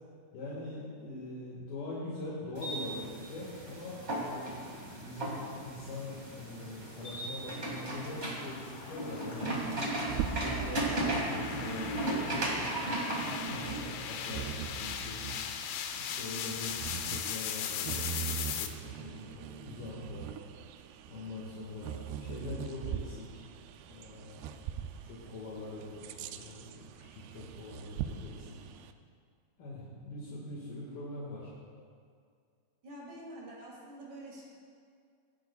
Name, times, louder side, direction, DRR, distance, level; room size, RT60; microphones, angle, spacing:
voice 1, 0.3-9.6 10.2-13.0 13.5-15.3 15.9-20.3 21.1-23.5 23.8-24.4 25.0-28.6 29.6-31.5, left 2 dB, 70° left, -6 dB, 3.5 m, -43 dB
sound 1, 2.5-15.0, right 1 dB, 30° right, 1.3 m, -36 dB
sound 2, 6.6-18.7, left 9 dB, 90° left, 2.8 m, -40 dB
Bird vocalization bird call bird song, 9.5-28.9, right 9 dB, 80° right, 2.5 m, -42 dB
voice 2, 32.8-34.4, right 1 dB, 50° right, -5 dB, 3.7 m, -46 dB
23.5 x 10.5 x 2.4 m, 2.2 s
omnidirectional pair, 4.7 m